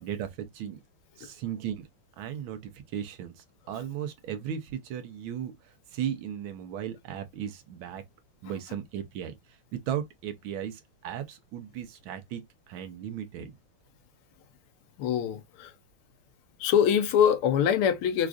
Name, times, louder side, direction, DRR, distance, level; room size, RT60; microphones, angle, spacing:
voice 1, 0.0-0.8 1.2-1.9 2.2-8.0 8.4-13.5, right 9 dB, 75° right, 1.4 m, -36 dB
voice 2, 15.0-15.7 16.6-18.3, left 8 dB, 80° left, 1.5 m, -24 dB
4.8 x 2.4 x 2.3 m
omnidirectional pair, 2.4 m